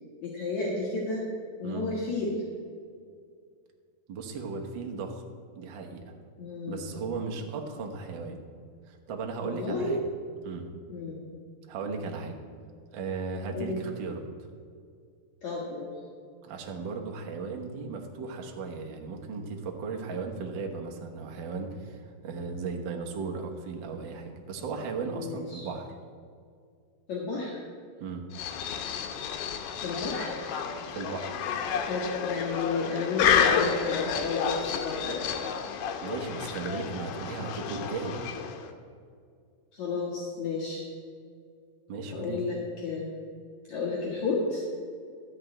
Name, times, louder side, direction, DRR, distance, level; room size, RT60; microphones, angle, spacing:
voice 1, 0.2-1.3 1.6-2.4 6.4-6.9 9.4-10.0 10.9-11.3 13.5-13.8 15.4-15.9 24.6-24.7 25.1-25.7 27.1-27.6 29.8-30.4 31.8-35.3 39.7-40.8 42.1-42.6 42.8-43.1 43.7-44.6, left 3 dB, 60° left, -4 dB, 2.6 m, -32 dB
voice 2, 4.1-5.2 5.6-6.0 6.7-8.4 8.9-10.0 10.4-10.7 11.7-12.3 12.9-14.3 16.4-25.9 28.0-28.2 30.9-31.4 36.0-38.3 41.9-42.4, right 4 dB, 85° right, 2 dB, 1.0 m, -36 dB
sound 1, 28.3-38.7, left 7 dB, 80° left, 2.6 m, -30 dB
13.5 x 5.3 x 8.8 m, 2.2 s
omnidirectional pair, 4.1 m